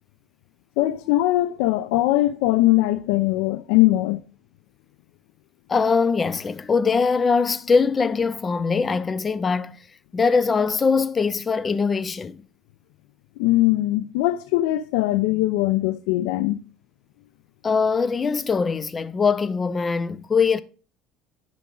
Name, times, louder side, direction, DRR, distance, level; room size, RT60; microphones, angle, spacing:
voice 1, 0.8-4.2 13.4-16.6, left 16 dB, 90° left, 0.5 m, -21 dB
voice 2, 5.7-9.8 10.1-12.4 17.6-20.6, left 5 dB, 25° left, 0.6 m, -22 dB
10.5 x 6.1 x 3.8 m
cardioid pair, 130°, 0 cm